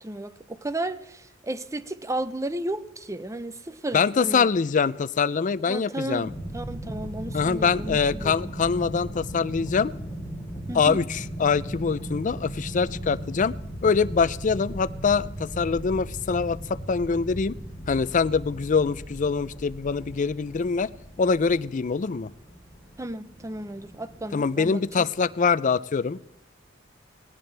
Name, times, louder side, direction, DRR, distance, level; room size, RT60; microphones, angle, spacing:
voice 1, 0.0-4.5 5.7-8.5 10.7-11.0 23.0-25.1, right 1 dB, 15° right, 0.6 m, -34 dB
voice 2, 3.9-6.3 7.3-9.9 10.7-13.5 13.8-17.5 17.9-20.9 21.2-22.3 24.3-26.2, left 5 dB, 40° left, 0.4 m, -24 dB
sound 1, 6.2-25.4, equal, 5° left, 3.6 m, -38 dB
18.5 x 18.5 x 3.3 m
head